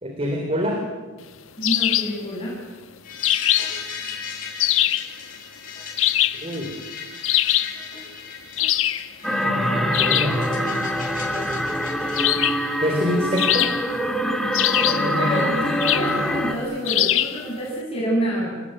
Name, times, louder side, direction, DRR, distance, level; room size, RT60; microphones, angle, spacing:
voice 1, 0.0-0.9 6.4-6.7 9.5-10.5 12.8-13.8, equal, 30° right, 2 dB, 3.8 m, -26 dB
sound 1, 1.6-2.2 3.2-3.8 4.6-5.1 6.0-6.5 7.2-7.8 8.6-9.1 9.9-10.4 12.2-12.7 13.4-14.0 14.5-15.1 15.8-16.2 16.9-17.4, left 13 dB, 90° left, 1.3 m, -22 dB
voice 2, 1.6-2.6 14.9-18.6, equal, 30° left, -3 dB, 7.3 m, -27 dB
sound 2, 3.0-12.2, left 6 dB, 45° left, 7.0 m, -37 dB
sound 3, 9.2-16.5, equal, 5° left, 2.5 m, -24 dB
29.0 x 19.0 x 9.1 m, 1.3 s
head